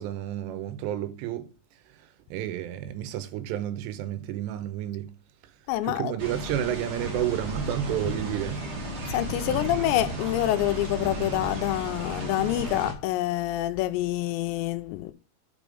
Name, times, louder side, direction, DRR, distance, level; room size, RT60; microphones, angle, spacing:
voice 1, 0.0-1.5 2.0-5.1 5.8-8.7 9.4-9.7, right 12 dB, 80° right, 2.9 m, -31 dB
voice 2, 5.7-6.1 9.1-15.1, left 14 dB, 85° left, 2.8 m, -27 dB
sound 1, 6.2-12.9, right 1 dB, 45° right, 1.8 m, -34 dB
6.0 x 5.2 x 4.9 m
omnidirectional pair, 5.0 m